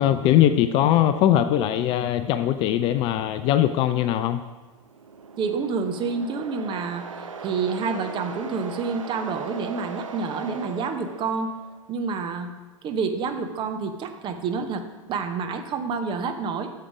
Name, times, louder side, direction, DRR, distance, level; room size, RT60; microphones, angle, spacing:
voice 1, 0.0-4.4, left 11 dB, 30° left, 11 dB, 0.3 m, -21 dB
sound 1, 4.8-11.8, right 4 dB, 75° right, 0.7 m, -39 dB
voice 2, 5.4-7.0 7.4-11.5 11.9-12.5 12.8-16.7, right 5 dB, 30° right, 7 dB, 0.8 m, -28 dB
8.6 x 6.6 x 4.9 m, 1.2 s
figure-of-eight pair, 90°, 17 cm